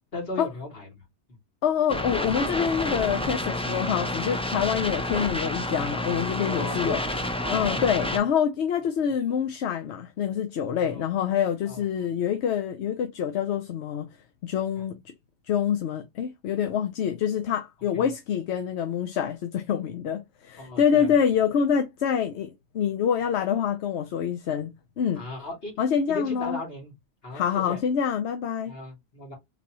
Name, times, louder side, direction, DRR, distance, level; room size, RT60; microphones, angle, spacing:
voice 1, 0.1-1.0 1.3-1.4 3.6-3.7 6.3-7.0 7.4-8.2 10.8-11.0 11.6-12.1 14.8-14.9 17.9-18.1 20.6-21.1 25.1-25.7 26.1-26.9 27.2-27.8 28.6-29.3, left 2 dB, 60° left, 2.6 m, -37 dB
voice 2, 1.6-7.0 7.5-14.1 14.4-15.0 15.5-24.7 25.0-25.2 25.8-26.6 27.3-28.7, left 8 dB, 75° left, 0.9 m, -26 dB
sound 1, 1.9-8.2, left 1 dB, 5° left, 0.5 m, -29 dB
4.0 x 3.5 x 2.9 m
omnidirectional pair, 1.2 m